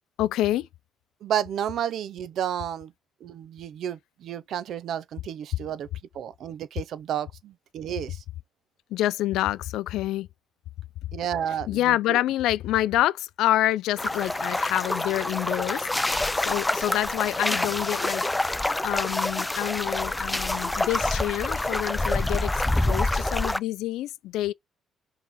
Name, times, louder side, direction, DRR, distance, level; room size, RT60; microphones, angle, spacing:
voice 1, 0.2-0.7 8.9-10.3 11.7-18.2 18.8-24.5, left 14 dB, 90° left, 0.4 m, -27 dB
voice 2, 1.2-2.9 3.2-5.9 6.1-8.2 11.1-12.2, right 9 dB, 70° right, 0.6 m, -31 dB
sound 1, 14.0-23.6, left 2 dB, 10° left, 0.4 m, -27 dB
5.5 x 3.8 x 4.7 m
cardioid pair, 90°, 0 cm